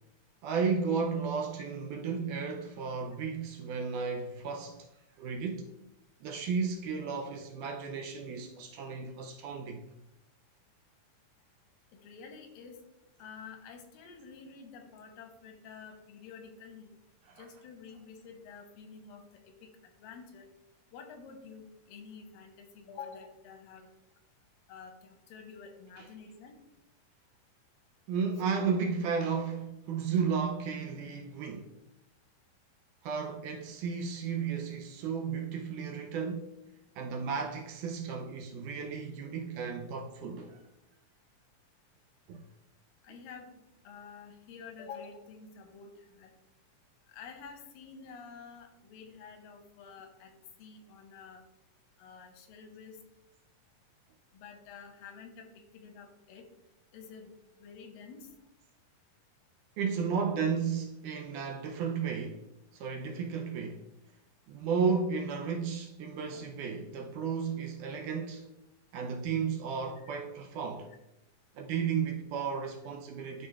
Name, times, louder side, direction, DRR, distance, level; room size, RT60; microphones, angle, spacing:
voice 1, 0.4-4.9 5.2-5.7 6.2-9.8 17.3-17.5 26.0-26.1 28.1-31.7 33.0-36.5 37.0-40.6 42.3-42.4 59.8-62.4 62.7-63.8 64.5-68.5 68.9-70.9 71.6-73.5, right 6 dB, 80° right, 1.9 m, -33 dB
voice 2, 12.0-12.8 13.2-16.9 17.4-19.7 20.0-20.5 20.9-23.9 24.7-26.6 43.0-43.6 43.8-46.3 47.1-50.3 50.6-51.4 52.0-53.0 54.3-55.5 55.7-56.4 56.9-57.3 57.6-58.3, left 5 dB, 90° left, 2.6 m, -49 dB
11.5 x 4.3 x 2.4 m
omnidirectional pair, 4.0 m